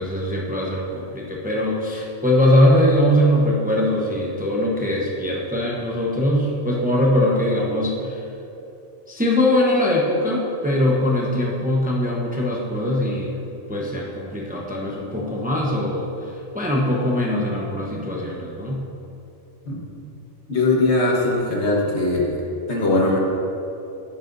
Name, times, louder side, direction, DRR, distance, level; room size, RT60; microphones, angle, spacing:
voice 1, 0.0-8.2 9.1-13.4 13.7-18.8, left 1 dB, 10° right, -3 dB, 0.8 m, -21 dB
voice 2, 20.5-22.3 22.7-23.2, left 2 dB, 60° left, -2 dB, 1.7 m, -20 dB
11.5 x 9.9 x 2.7 m, 2.8 s
omnidirectional pair, 1.3 m